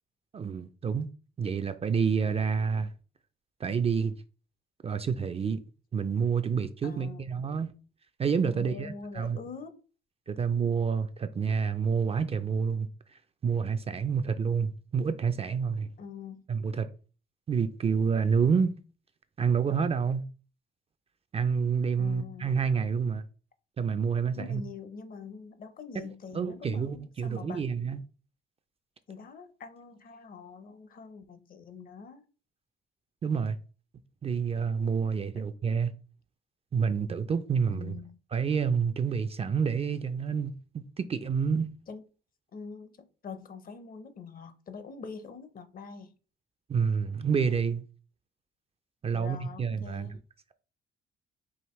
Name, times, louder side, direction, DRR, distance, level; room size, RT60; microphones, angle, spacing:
voice 1, 0.3-1.1 1.4-2.9 3.6-4.1 4.8-5.6 5.9-7.7 8.2-9.4 10.3-12.9 13.4-15.9 16.5-16.9 17.5-18.7 19.4-20.2 21.3-23.2 23.8-24.6 26.3-28.0 33.2-33.6 34.2-35.9 36.7-38.0 38.3-41.7 46.7-47.8 49.0-50.2, right 6 dB, 30° right, 0.3 m, -28 dB
voice 2, 6.8-7.2 8.5-9.8 16.0-16.4 22.0-22.5 24.4-27.8 29.1-32.2 37.7-38.2 41.9-42.0 42.5-46.1 49.1-50.2, left 5 dB, 45° left, 0.6 m, -44 dB
4.9 x 2.6 x 3.0 m
cardioid pair, 90°, 20 cm